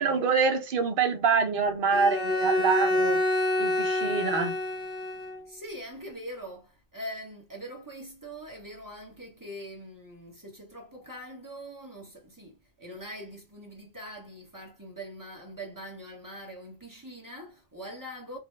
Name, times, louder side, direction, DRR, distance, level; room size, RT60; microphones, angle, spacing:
voice 1, 0.0-3.2 3.6-4.6, right 5 dB, 55° right, 0.8 m, -25 dB
Bowed string instrument, 1.9-5.4, left 1 dB, 65° left, 1.0 m, -27 dB
voice 2, 5.5-18.4, equal, 20° right, 0.9 m, -43 dB
3.2 x 2.0 x 3.2 m
omnidirectional pair, 1.1 m